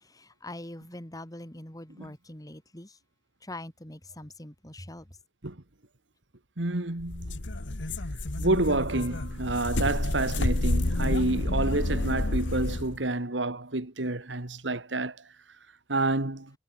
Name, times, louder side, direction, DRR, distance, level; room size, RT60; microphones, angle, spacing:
voice 1, 0.1-2.9 3.4-5.0, left 1 dB, 20° left, 3.1 m, -43 dB
voice 2, 6.6-7.4 8.4-15.2 15.9-16.5, right 2 dB, 75° right, 2.2 m, -29 dB
sound 1, 7.0-13.0, left 1 dB, 80° left, 1.6 m, -29 dB
head